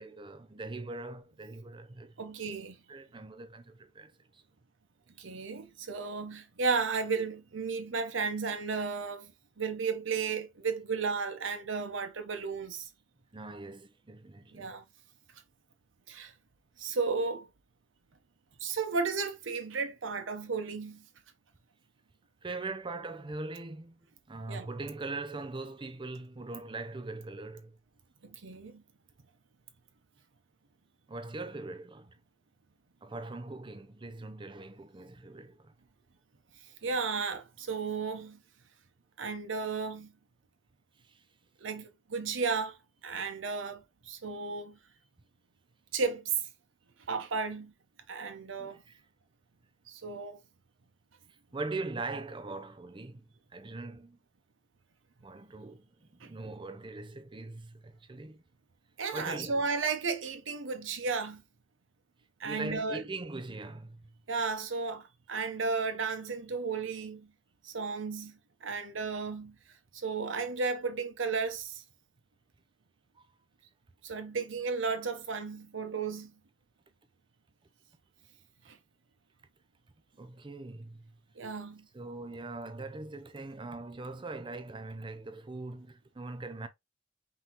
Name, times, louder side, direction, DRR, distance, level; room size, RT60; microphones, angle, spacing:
voice 1, 0.0-2.3 2.9-4.4 13.3-14.8 22.4-27.8 31.1-32.2 33.0-35.7 41.0-41.2 48.6-49.0 51.5-53.2 53.5-54.2 55.2-58.4 59.1-59.7 62.4-64.1 80.2-81.1 81.9-86.7, right 2 dB, 25° right, 0.5 m, -41 dB
voice 2, 2.2-2.8 5.2-9.3 9.6-12.9 14.5-14.8 16.1-16.3 16.8-17.5 18.6-21.0 24.5-24.7 28.2-28.8 36.8-38.4 39.2-40.1 41.6-42.8 43.0-44.8 45.9-46.3 47.1-47.7 48.1-48.8 49.9-50.4 56.2-56.3 59.0-61.4 62.4-63.0 64.3-67.3 67.6-69.5 69.9-71.8 74.0-76.3 78.7-78.8 81.4-81.9, right 4 dB, 85° right, 0.9 m, -34 dB
5.5 x 2.9 x 2.9 m
head